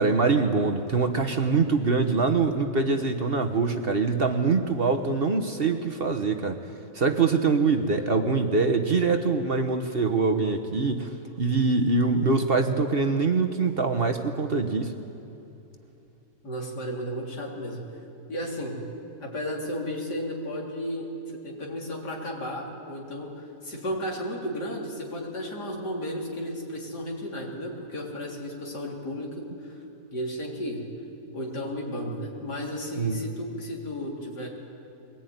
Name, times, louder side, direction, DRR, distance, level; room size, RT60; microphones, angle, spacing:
voice 1, 0.0-6.6 6.9-11.1 11.4-14.9 33.0-33.2, right 4 dB, 40° right, 6 dB, 1.2 m, -24 dB
voice 2, 7.9-8.4 16.4-17.8 18.3-18.8 19.2-21.1 21.4-29.8 30.1-30.8 31.3-34.5, equal, 90° left, -2 dB, 4.2 m, -34 dB
22.5 x 19.0 x 9.4 m, 2.8 s
omnidirectional pair, 1.7 m